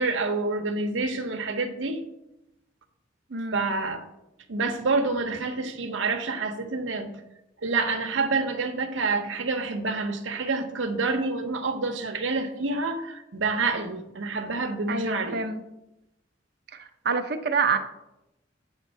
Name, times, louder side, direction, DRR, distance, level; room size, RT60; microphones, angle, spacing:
voice 1, 0.0-2.0 3.5-4.0 4.5-7.2 7.6-15.4, right 3 dB, 85° right, 6 dB, 0.9 m, -28 dB
voice 2, 3.3-3.7 14.9-15.6 17.0-17.8, right 5 dB, 55° right, 7 dB, 0.6 m, -26 dB
8.1 x 3.6 x 5.5 m, 0.90 s
head